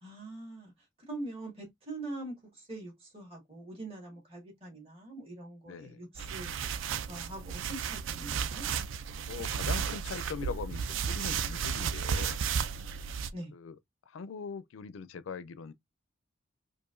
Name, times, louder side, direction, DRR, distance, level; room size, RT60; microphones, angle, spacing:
voice 1, 0.0-0.7 1.1-6.6 7.1-8.6 13.3-13.5, right 2 dB, 30° right, 1.7 m, -43 dB
voice 2, 5.7-6.0 9.3-12.4 13.5-13.8 14.1-15.7, left 5 dB, 85° left, 0.4 m, -41 dB
sound 1, 6.2-13.3, right 6 dB, 80° right, 0.4 m, -33 dB
4.7 x 2.5 x 2.5 m
head